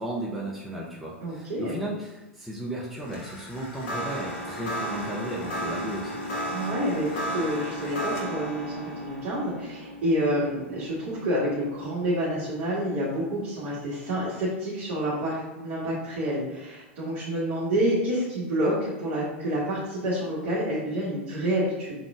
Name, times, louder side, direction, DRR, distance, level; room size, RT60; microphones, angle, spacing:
voice 1, 0.0-6.2, right 1 dB, ahead, -5 dB, 0.7 m, -35 dB
voice 2, 1.2-1.8 6.5-21.9, equal, 50° right, -8 dB, 1.6 m, -28 dB
sound 1, 3.0-12.3, equal, 50° left, 1.1 m, -34 dB
6.0 x 3.7 x 2.4 m, 1.0 s
figure-of-eight pair, 90°, 7 cm